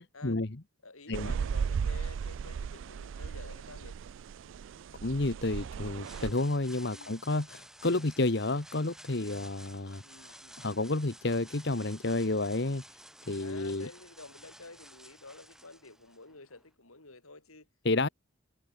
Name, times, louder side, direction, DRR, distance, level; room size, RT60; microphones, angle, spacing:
voice 1, 0.1-0.4 0.8-4.0 6.9-7.2 10.0-10.8 13.4-17.7, left 3 dB, 85° left, 6.1 m, -51 dB
sound 1, 1.1-6.3, right 6 dB, 60° right, 0.3 m, -36 dB
voice 2, 5.0-10.0 10.6-12.8 13.3-13.9 17.8-18.1, left 2 dB, 50° left, 1.2 m, -30 dB
sound 2, 6.0-16.7, right 1 dB, ahead, 5.9 m, -53 dB
head